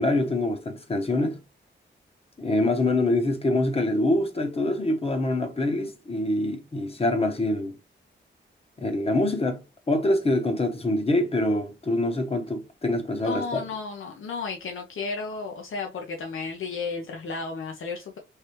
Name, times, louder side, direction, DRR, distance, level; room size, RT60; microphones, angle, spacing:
voice 1, 0.0-1.4 2.4-7.7 8.8-9.6 9.9-13.7, left 1 dB, 30° left, 0.8 m, -25 dB
voice 2, 13.1-18.2, left 4 dB, 80° left, 0.7 m, -33 dB
3.3 x 3.2 x 2.9 m
wide cardioid pair, 125°, 20 cm